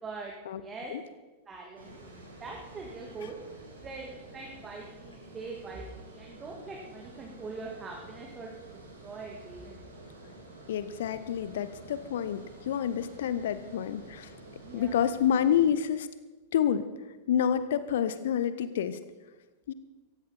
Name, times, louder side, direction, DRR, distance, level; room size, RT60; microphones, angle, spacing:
voice 1, 0.0-0.3 0.6-0.9 1.5-2.0 2.4-3.3 3.8-8.5 9.0-9.8 14.6-14.9, right 4 dB, 20° right, -1 dB, 2.2 m, -42 dB
Water, 1.8-15.7, right 1 dB, 75° right, 3.6 m, -50 dB
voice 2, 10.7-14.3 14.7-16.1 16.5-16.9 17.3-19.0 19.7-19.8, left 9 dB, 60° left, 13 dB, 0.8 m, -28 dB
17.0 x 15.5 x 4.2 m, 1.2 s
figure-of-eight pair, 90°, 0 cm